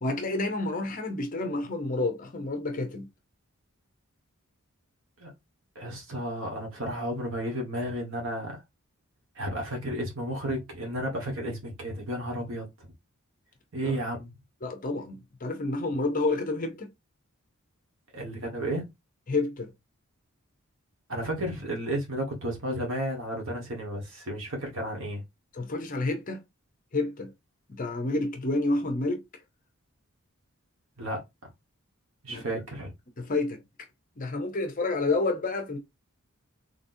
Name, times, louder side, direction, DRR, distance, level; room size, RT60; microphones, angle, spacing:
voice 1, 0.0-3.1 13.8-14.0 14.6-16.9 19.3-19.7 25.5-26.4 26.9-27.3 27.7-29.2 32.3-32.4 33.2-33.6 34.2-35.8, left 2 dB, 35° left, 0.7 m, -29 dB
voice 2, 5.7-8.6 9.3-12.6 13.7-14.3 18.1-18.8 21.1-25.2 31.0-31.2 32.2-32.9, right 1 dB, 60° right, 1.4 m, -32 dB
3.9 x 3.4 x 2.6 m
head